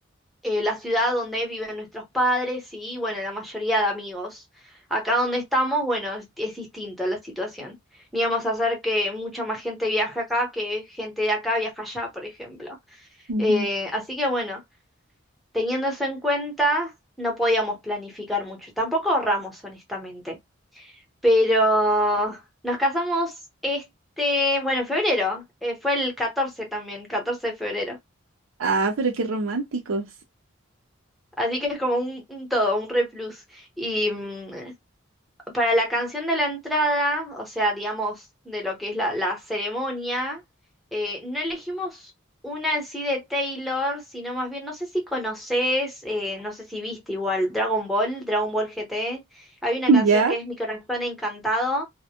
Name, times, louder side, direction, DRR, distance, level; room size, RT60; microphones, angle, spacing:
voice 1, 0.4-4.4 4.9-7.7 8.1-12.8 13.4-14.6 15.5-16.9 17.2-20.4 20.8-20.9 21.2-23.3 23.6-23.9 24.2-28.0 31.4-34.7 35.5-38.2 38.4-40.4 40.9-42.0 42.4-51.8, equal, ahead, 0.9 m, -26 dB
voice 2, 13.3-13.6 28.6-30.1 49.9-50.4, right 3 dB, 90° right, 0.6 m, -22 dB
2.1 x 2.0 x 2.8 m
head